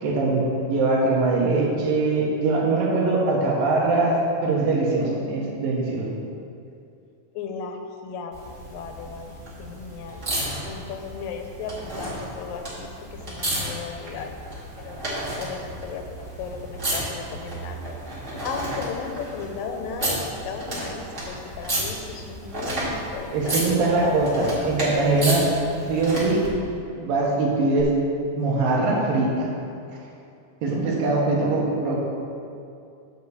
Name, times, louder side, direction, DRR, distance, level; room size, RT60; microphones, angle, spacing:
voice 1, 0.0-6.1 23.3-25.5 25.9-26.4 27.0-27.9 28.4-29.5 30.6-32.0, right 3 dB, 85° right, -3 dB, 3.2 m, -22 dB
voice 2, 7.3-10.2 10.6-14.3 14.8-15.0 15.3-18.0 18.4-24.8 30.7-31.1, left 5 dB, 85° left, 4 dB, 2.5 m, -36 dB
sound 1, 8.3-26.5 27.8-27.9, right 1 dB, 25° right, 1.7 m, -32 dB
9.0 x 5.2 x 7.0 m, 2.5 s
omnidirectional pair, 3.9 m